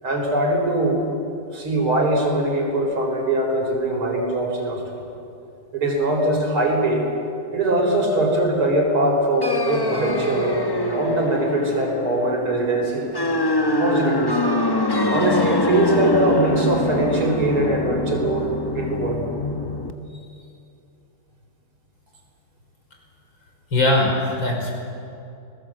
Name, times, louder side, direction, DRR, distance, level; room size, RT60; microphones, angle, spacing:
voice 1, 0.0-1.0 1.5-5.0 5.7-7.1 7.5-13.1 13.8-14.4 15.1-19.2, right 1 dB, 80° right, 1 dB, 5.5 m, -22 dB
sound 1, 9.4-19.9, left 2 dB, 15° left, 0.8 m, -24 dB
voice 2, 23.7-24.7, left 2 dB, 60° left, 0 dB, 6.0 m, -20 dB
30.0 x 20.0 x 7.7 m, 2.6 s
omnidirectional pair, 2.3 m